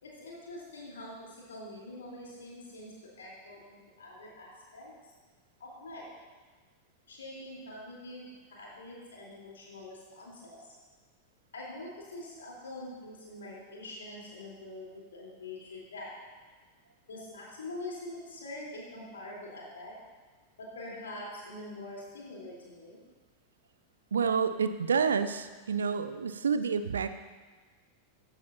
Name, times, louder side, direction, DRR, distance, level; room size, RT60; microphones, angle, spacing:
voice 1, 0.0-4.9 5.6-6.1 7.1-10.6 11.5-16.1 17.1-19.9 20.6-23.0, left 1 dB, 70° left, -4 dB, 4.0 m, -44 dB
voice 2, 24.1-27.1, right 6 dB, 70° right, 11 dB, 0.6 m, -29 dB
15.5 x 10.5 x 2.9 m, 1.4 s
figure-of-eight pair, 90°, 0 cm